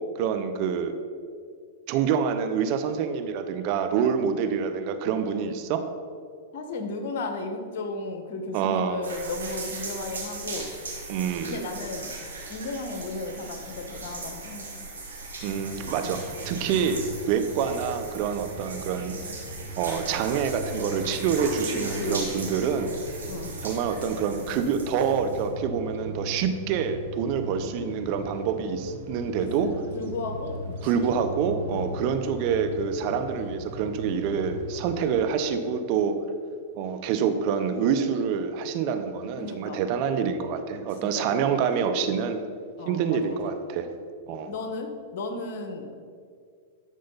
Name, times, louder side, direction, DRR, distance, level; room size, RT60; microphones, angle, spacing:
voice 1, 0.2-0.9 1.9-5.8 8.5-9.0 11.1-11.6 15.4-17.0 17.3-19.2 19.8-22.9 23.6-29.7 30.8-36.1 36.7-42.4 42.9-43.9 44.3-44.5, right 7 dB, 50° right, 9 dB, 0.8 m, -26 dB
voice 2, 6.5-10.7 11.4-12.1 12.5-14.9 16.0-16.1 16.5-16.6 21.7-22.3 23.3-23.5 29.4-31.1 31.6-31.9 39.4-39.8 41.0-41.6 42.8-43.5 44.5-46.0, left 3 dB, 60° left, 5 dB, 1.5 m, -35 dB
sound 1, 9.0-25.5, right 3 dB, 85° right, 2.4 m, -38 dB
sound 2, 15.5-35.1, equal, 70° right, 1.4 m, -39 dB
12.0 x 6.5 x 4.1 m, 2.1 s
hypercardioid pair, 110°, 0 cm